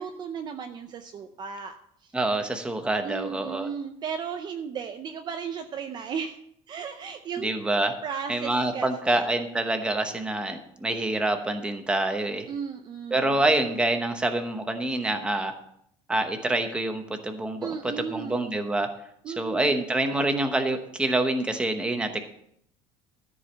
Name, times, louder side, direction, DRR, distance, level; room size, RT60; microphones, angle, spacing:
voice 1, 0.0-2.1 3.0-6.4 6.7-7.5 8.0-9.3 12.5-13.4 17.6-18.5 19.2-19.8, right 6 dB, 30° right, 6 dB, 0.6 m, -35 dB
voice 2, 2.1-3.7 7.4-7.9 8.3-12.5 13.1-15.5 16.1-18.9 19.3-22.2, right 2 dB, 5° right, 6 dB, 0.9 m, -26 dB
13.5 x 4.9 x 7.3 m, 0.71 s
cardioid pair, 170°, 14 cm